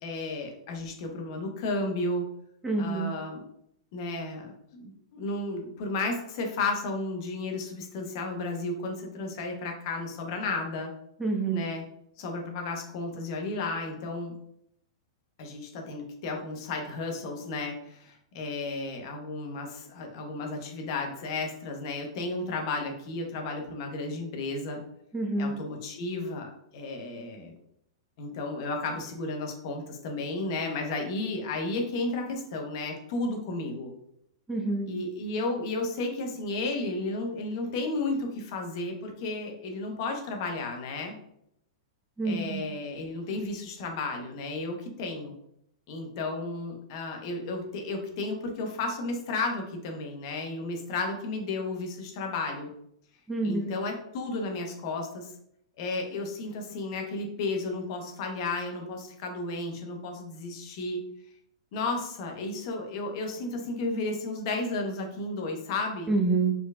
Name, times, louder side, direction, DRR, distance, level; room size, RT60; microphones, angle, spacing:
voice 1, 0.0-2.3 2.8-3.4 3.9-10.9 11.5-11.8 12.2-14.4 15.4-24.8 25.4-27.5 28.2-33.9 34.9-41.2 42.2-45.3 45.9-52.7 53.4-55.3 55.8-61.0 61.7-66.1, left 2 dB, 55° left, 2 dB, 1.1 m, -33 dB
voice 2, 2.6-3.1 11.2-11.7 25.1-25.6 34.5-34.9 42.2-42.6 53.3-53.8 66.1-66.5, right 3 dB, 10° right, 1 dB, 0.9 m, -27 dB
4.7 x 4.1 x 2.5 m, 0.74 s
hypercardioid pair, 115°, 3 cm